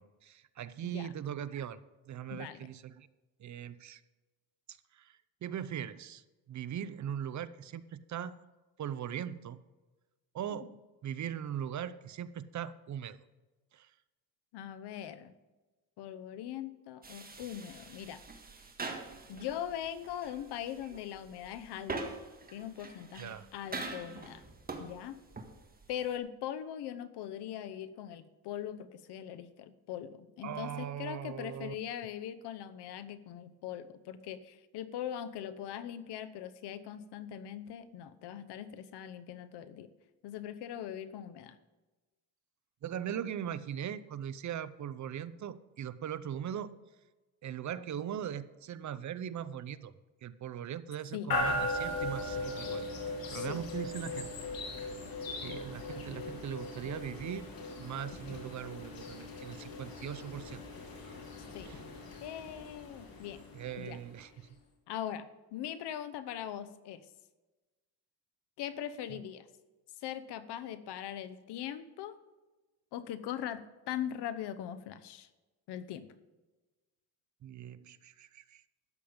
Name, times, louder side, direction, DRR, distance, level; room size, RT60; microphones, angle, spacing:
voice 1, 0.0-1.8 2.1-3.1 3.4-4.0 4.7-8.4 8.8-9.6 10.3-13.2 13.7-13.9 23.2-23.5 30.4-31.7 42.8-46.8 47.4-49.9 50.2-54.3 54.6-54.9 55.4-60.6 61.6-61.8 63.5-64.3 69.1-69.2 77.4-78.6, right 9 dB, 45° right, 15 dB, 0.7 m, -40 dB
voice 2, 2.3-2.7 10.5-10.7 14.5-15.3 16.0-18.2 19.3-22.1 22.5-24.4 24.8-25.2 25.9-39.9 40.2-41.6 51.1-51.3 53.5-53.6 61.5-61.7 62.2-63.4 63.8-64.0 64.9-67.0 68.6-69.5 70.0-72.2 72.9-75.3 75.7-76.1, left 10 dB, 90° left, 13 dB, 1.0 m, -41 dB
sound 1, 17.0-26.2, right 3 dB, 25° right, 1.7 m, -44 dB
sound 2, 51.3-64.3, left 2 dB, 60° left, 3.3 m, -39 dB
13.0 x 8.8 x 5.1 m, 1.2 s
cardioid pair, 125°, 39 cm